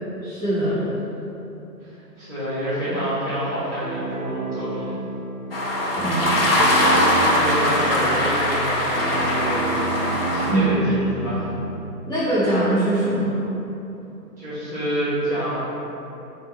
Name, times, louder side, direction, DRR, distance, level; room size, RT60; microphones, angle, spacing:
voice 1, 0.2-0.8 5.9-6.6 10.5-10.7 12.0-13.4, right 1 dB, 20° left, -17 dB, 1.1 m, -22 dB
voice 2, 1.8-4.9 7.2-9.7 10.0-11.5 14.4-15.6, equal, 10° right, -17 dB, 0.6 m, -28 dB
sound 1, 3.8-11.8, right 3 dB, 55° right, 0.5 m, -31 dB
sound 2, 5.5-10.5, left 1 dB, 40° left, 0.5 m, -21 dB
5.2 x 2.1 x 3.0 m, 3.0 s
figure-of-eight pair, 150°, 50 cm